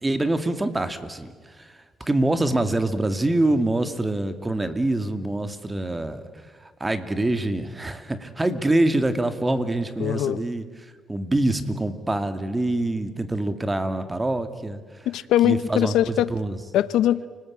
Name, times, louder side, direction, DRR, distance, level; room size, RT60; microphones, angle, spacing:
voice 1, 0.0-10.7 11.1-14.8 15.4-16.6, right 2 dB, 15° right, 9 dB, 2.2 m, -25 dB
voice 2, 10.0-10.4 15.1-16.3 16.7-17.3, left 12 dB, 85° left, 16 dB, 0.8 m, -21 dB
29.5 x 20.0 x 8.7 m, 1.5 s
cardioid pair, 90°, 0 cm